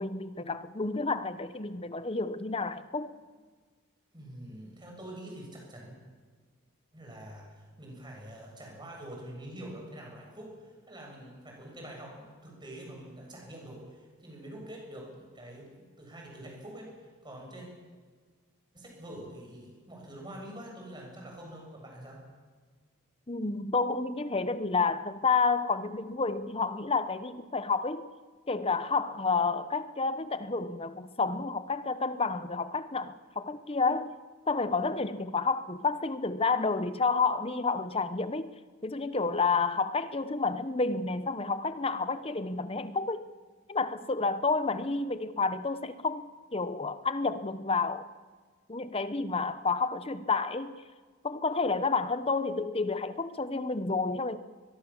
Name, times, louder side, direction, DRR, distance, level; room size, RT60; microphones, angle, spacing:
voice 1, 0.0-3.1 23.3-28.1 28.5-34.1 34.5-38.5 38.8-43.2 43.7-48.1 48.7-50.7 51.2-54.4, left 4 dB, 25° left, 0.9 m, -30 dB
voice 2, 4.1-5.9 6.9-16.9 17.2-17.7 18.7-22.2, right 1 dB, 20° right, 7.5 m, -45 dB
23.0 x 22.0 x 7.2 m
head